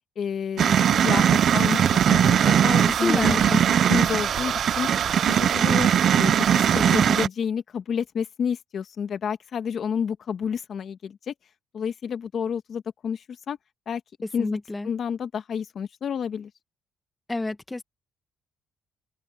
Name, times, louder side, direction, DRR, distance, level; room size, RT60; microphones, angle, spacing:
voice 1, 0.2-4.9 5.2-5.9 6.2-11.3 11.7-13.6 13.9-14.0 14.3-14.5 14.8-16.5, left 7 dB, 55° left, 1.9 m, -30 dB
sound 1, 0.6-7.3, right 9 dB, 60° right, 0.4 m, -20 dB
voice 2, 3.0-3.5 14.4-14.9 17.3-17.8, left 2 dB, 15° left, 1.3 m, -28 dB
open air
cardioid pair, 90°, 0 cm